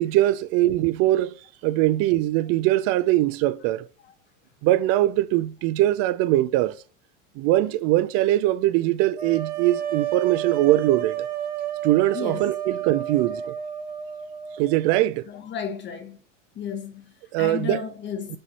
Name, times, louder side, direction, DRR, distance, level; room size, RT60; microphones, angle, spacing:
voice 1, 0.0-1.3 1.6-3.9 4.6-6.8 7.4-11.3 11.8-13.5 14.6-15.3 17.3-17.8 18.3-18.4, right 15 dB, 40° right, 0.4 m, -22 dB
sound 1, 9.2-15.0, right 10 dB, 25° right, 1.0 m, -31 dB
voice 2, 12.1-12.5 15.3-16.2 16.5-18.4, left 7 dB, 30° left, 0.9 m, -33 dB
5.4 x 5.3 x 4.2 m
hypercardioid pair, 110°, 38 cm